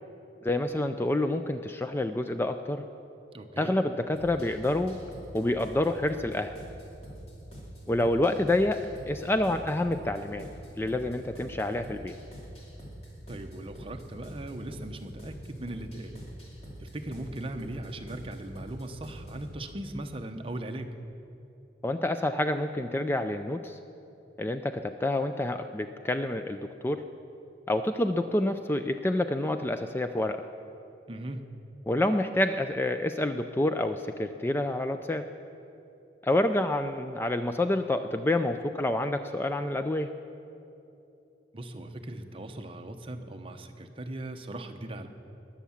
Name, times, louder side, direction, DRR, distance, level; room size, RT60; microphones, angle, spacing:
voice 1, 0.4-2.8 3.6-5.0 5.3-6.5 7.9-10.5 10.8-12.1 21.8-23.8 24.4-27.0 27.7-30.4 31.9-35.3 36.2-40.1, left 1 dB, 15° left, 8 dB, 0.3 m, -28 dB
voice 2, 3.3-3.8 13.3-16.2 16.8-20.9 31.1-31.4 41.5-45.1, right 1 dB, 30° right, 6 dB, 0.8 m, -39 dB
sound 1, 4.2-19.5, right 1 dB, 35° left, 3.0 m, -45 dB
20.5 x 7.3 x 7.1 m, 2.9 s
head